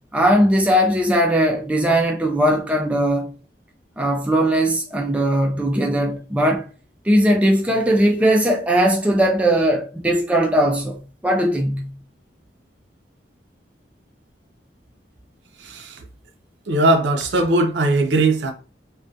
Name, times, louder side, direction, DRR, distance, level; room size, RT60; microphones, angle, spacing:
voice 1, 0.1-3.3 4.0-6.6 7.1-11.9, equal, 5° right, 0.3 m, -19 dB
voice 2, 16.7-18.5, right 2 dB, 80° right, 0.5 m, -19 dB
2.3 x 2.2 x 2.6 m
head